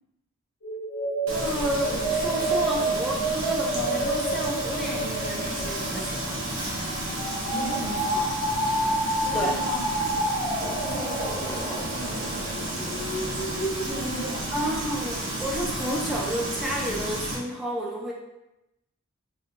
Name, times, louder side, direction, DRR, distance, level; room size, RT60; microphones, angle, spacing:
sound 1, 0.6-13.9, right 1 dB, 55° left, 0.6 m, -29 dB
voice 1, 1.3-6.5 9.2-9.6 14.5-18.1, equal, ahead, -3 dB, 0.4 m, -31 dB
Frying (food), 1.3-17.4, right 1 dB, 75° right, 0.8 m, -32 dB
voice 2, 7.5-8.4 9.2-9.9 10.8-13.5 13.8-14.7, right 1 dB, 45° right, -7 dB, 1.0 m, -37 dB
2.7 x 2.6 x 2.5 m, 0.91 s
head